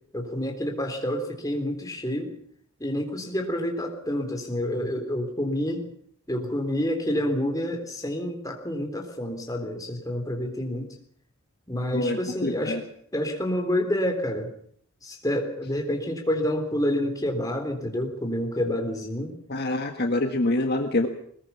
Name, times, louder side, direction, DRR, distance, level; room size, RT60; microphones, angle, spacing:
voice 1, 0.1-2.4 2.8-5.8 6.3-10.9 11.7-12.8 13.1-14.5 15.0-19.3, left 1 dB, 15° left, 3 dB, 3.7 m, -28 dB
voice 2, 11.9-12.8 19.5-21.1, left 2 dB, 45° left, 4 dB, 1.7 m, -26 dB
21.5 x 21.0 x 7.0 m, 0.63 s
head